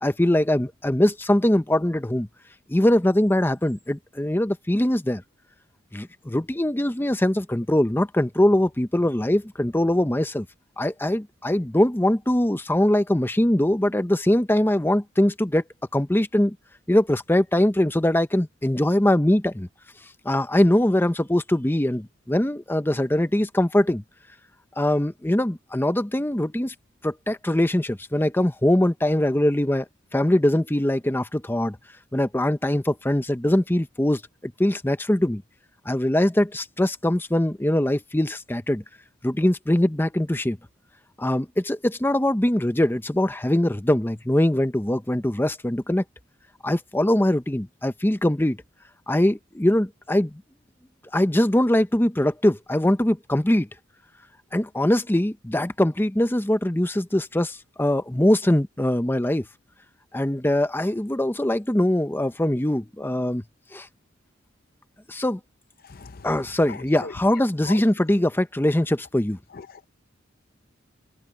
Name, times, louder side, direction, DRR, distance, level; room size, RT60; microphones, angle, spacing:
voice 1, 0.0-2.3 2.7-5.2 5.9-10.5 10.8-15.6 15.9-16.6 16.9-19.7 20.2-24.0 24.8-26.7 27.0-29.8 30.1-31.8 32.1-35.4 35.9-38.8 39.2-40.6 41.2-46.0 46.6-48.6 49.1-50.4 51.1-53.7 54.5-59.5 60.1-63.4 63.7-63.9 65.1-65.4 66.2-69.4, left 1 dB, 10° left, 0.7 m, -22 dB
voice 2, 65.8-66.3 66.7-67.1 67.6-67.8 69.5-69.9, left 5 dB, 50° left, 0.6 m, -39 dB
head